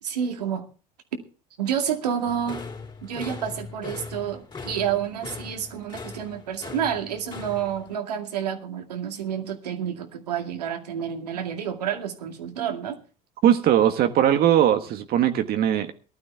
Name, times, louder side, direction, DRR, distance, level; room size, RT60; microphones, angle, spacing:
voice 1, 0.0-0.7 1.6-2.6 3.0-13.0, right 8 dB, 80° right, 2.3 m, -29 dB
sound 1, 2.3-7.9, left 4 dB, 25° left, 3.9 m, -39 dB
voice 2, 13.4-15.9, right 10 dB, 50° right, 1.4 m, -20 dB
18.5 x 12.5 x 3.5 m
hypercardioid pair, 65°, 20 cm